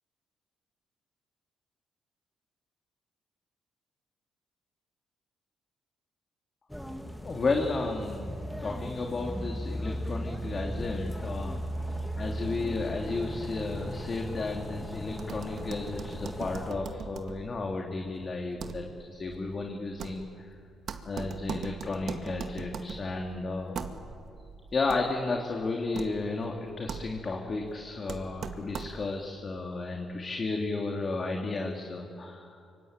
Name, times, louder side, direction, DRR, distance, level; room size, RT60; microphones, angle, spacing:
sound 1, 6.7-16.7, equal, 5° left, 1.9 m, -37 dB
voice 1, 7.2-8.3 8.6-11.6 12.2-20.3 21.0-23.8 24.7-32.6, left 3 dB, 40° left, 1 dB, 2.8 m, -33 dB
sound 2, 15.2-29.2, right 6 dB, 60° right, 2.0 m, -41 dB
25.0 x 24.5 x 8.9 m, 2.4 s
cardioid pair, 90°, 0 cm